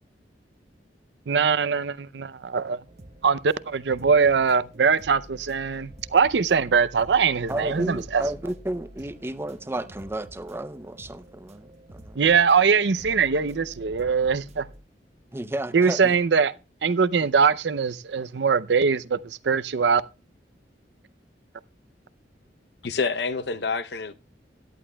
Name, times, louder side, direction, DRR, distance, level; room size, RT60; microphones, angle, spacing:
voice 1, 1.3-2.8 3.2-8.2 12.2-14.7 15.7-16.5 16.8-20.0, right 5 dB, 70° right, 0.5 m, -22 dB
sound 1, 2.8-14.8, right 1 dB, 40° right, 0.9 m, -48 dB
voice 2, 7.5-12.2 15.3-16.2 17.2-17.3, right 1 dB, 15° right, 0.6 m, -32 dB
voice 3, 22.8-24.1, left 4 dB, 65° left, 0.7 m, -27 dB
17.0 x 11.0 x 2.2 m
head